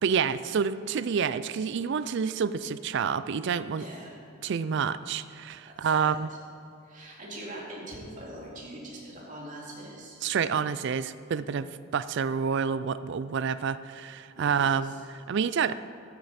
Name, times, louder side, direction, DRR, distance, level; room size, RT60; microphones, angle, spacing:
voice 1, 0.0-3.8 4.4-6.3 10.2-15.7, right 6 dB, 55° right, 15 dB, 0.3 m, -28 dB
voice 2, 3.8-4.1 5.8-6.4 6.8-10.2 14.4-15.0, right 1 dB, 35° right, -4 dB, 2.4 m, -43 dB
13.0 x 8.9 x 4.2 m, 2.4 s
head